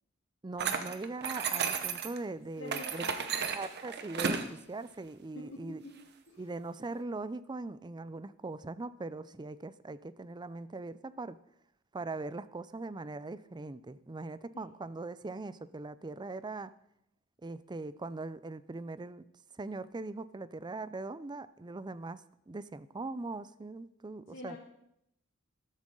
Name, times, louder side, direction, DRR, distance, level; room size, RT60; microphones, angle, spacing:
voice 1, 0.4-3.0 3.5-5.8 6.4-11.4 11.9-16.7 17.4-19.2 19.6-24.6, right 3 dB, 20° right, 16 dB, 0.4 m, -41 dB
sound 1, 0.6-2.2 2.7-4.5, right 6 dB, 55° right, 1.0 m, -33 dB
voice 2, 2.6-3.4 5.3-5.9 6.3-6.4 24.3-24.6, left 1 dB, 60° left, -4 dB, 2.1 m, -46 dB
13.5 x 12.5 x 3.8 m, 0.79 s
head